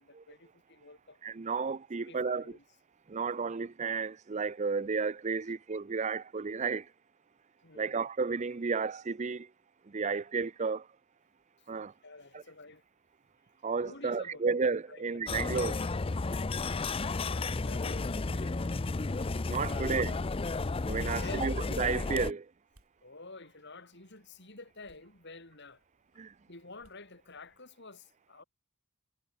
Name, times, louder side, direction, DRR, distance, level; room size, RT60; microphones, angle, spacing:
voice 1, 0.0-1.2 2.0-2.6 7.6-8.1 11.6-11.7 12.0-12.8 13.8-14.4 14.9-15.3 16.6-18.7 19.7-20.2 21.2-21.5 23.0-25.8 26.5-28.4, left 3 dB, 50° left, 5.0 m, -50 dB
voice 2, 1.2-2.4 3.1-6.9 7.7-9.5 9.9-10.9 11.7-11.9 12.3-12.4 13.6-15.9 19.5-20.2 20.9-22.5 26.2-26.3, right 5 dB, 30° right, 0.5 m, -32 dB
sound 1, 15.3-22.3, left 3 dB, 25° left, 0.5 m, -33 dB
sound 2, 16.4-27.6, right 1 dB, 75° right, 4.4 m, -70 dB
head